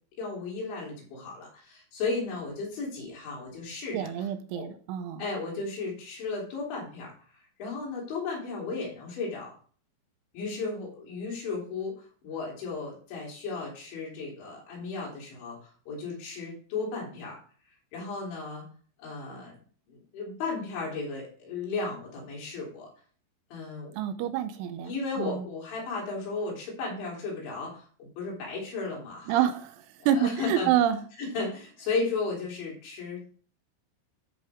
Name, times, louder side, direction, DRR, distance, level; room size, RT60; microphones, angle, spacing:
voice 1, 0.2-4.1 4.5-4.7 5.2-9.5 10.3-17.4 17.9-18.7 19.0-19.6 19.9-22.9 23.5-23.9 24.8-29.4 30.0-30.7 31.2-33.2, left 4 dB, 70° left, -3 dB, 5.8 m, -35 dB
voice 2, 3.9-5.3 23.9-25.5 29.3-29.8 30.1-31.0, right 10 dB, 85° right, 10 dB, 3.2 m, -27 dB
13.0 x 5.6 x 3.6 m, 0.43 s
omnidirectional pair, 5.4 m